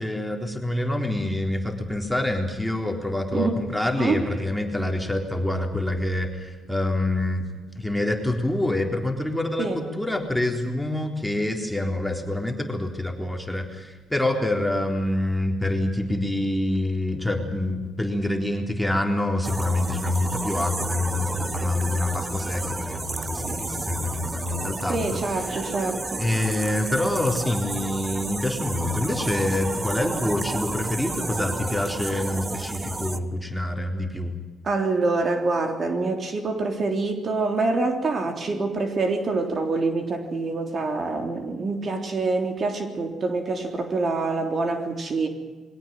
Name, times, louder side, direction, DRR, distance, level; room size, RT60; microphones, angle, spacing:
voice 1, 0.0-7.5 7.8-25.2 26.2-34.3, left 1 dB, ahead, 2 dB, 3.9 m, -26 dB
sound 1, 19.4-33.2, right 2 dB, 25° right, 1.3 m, -32 dB
voice 2, 24.9-26.2 34.6-45.3, right 3 dB, 45° right, 5 dB, 3.5 m, -26 dB
22.5 x 17.5 x 9.1 m, 1.3 s
cardioid pair, 90°, 0 cm